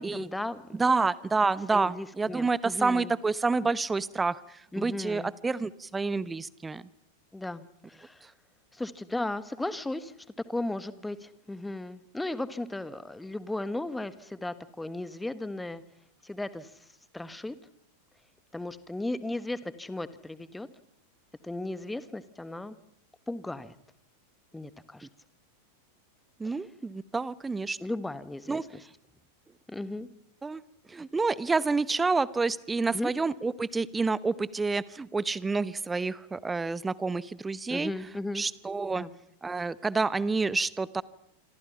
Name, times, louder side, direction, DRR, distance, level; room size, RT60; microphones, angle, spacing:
voice 1, 0.0-0.8 1.7-3.1 4.7-5.3 7.3-8.2 8.7-10.1 10.5-15.8 16.2-16.7 17.1-17.5 18.5-20.7 21.4-22.7 23.3-23.7 24.5-25.1 26.4-26.5 27.8-28.8 29.7-30.1 32.9-33.1 37.7-38.4 38.9-39.1, left 2 dB, 5° left, 15 dB, 1.4 m, -36 dB
voice 2, 0.8-4.4 4.8-6.8 26.4-27.8 28.5-28.6 30.4-30.6 30.9-37.9 38.3-39.0 39.4-41.0, right 4 dB, 10° right, 20 dB, 0.9 m, -28 dB
26.5 x 26.0 x 5.8 m, 0.73 s
figure-of-eight pair, 90°, 0 cm